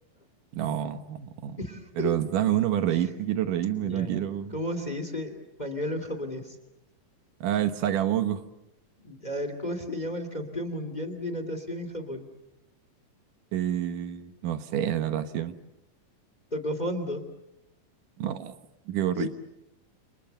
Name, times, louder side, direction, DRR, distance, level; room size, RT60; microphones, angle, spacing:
voice 1, 0.5-1.6 2.0-4.6 7.4-8.4 13.5-15.6 18.2-18.5 18.9-19.3, right 11 dB, 80° right, 9 dB, 2.9 m, -28 dB
voice 2, 1.6-2.1 2.9-3.1 3.8-4.1 4.5-6.6 9.0-12.3 16.5-17.2 19.1-19.3, left 1 dB, 15° left, 9 dB, 2.4 m, -33 dB
29.5 x 29.0 x 6.9 m, 0.86 s
omnidirectional pair, 3.7 m